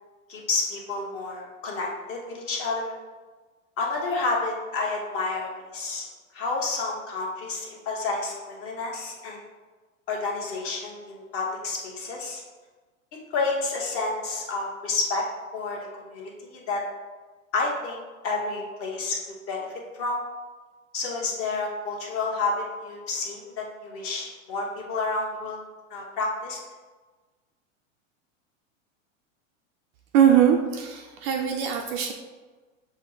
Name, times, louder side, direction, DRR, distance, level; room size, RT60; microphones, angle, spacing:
voice 1, 0.3-2.9 3.8-6.1 6.3-9.4 10.1-12.4 13.3-15.2 15.5-15.8 16.1-16.8 17.5-19.7 19.9-20.2 20.9-25.6 25.9-26.6, left 3 dB, 35° left, -2 dB, 1.1 m, -30 dB
voice 2, 30.1-32.1, right 9 dB, 40° right, 2 dB, 0.4 m, -21 dB
6.2 x 2.1 x 3.8 m, 1.3 s
supercardioid pair, 130°, 40 cm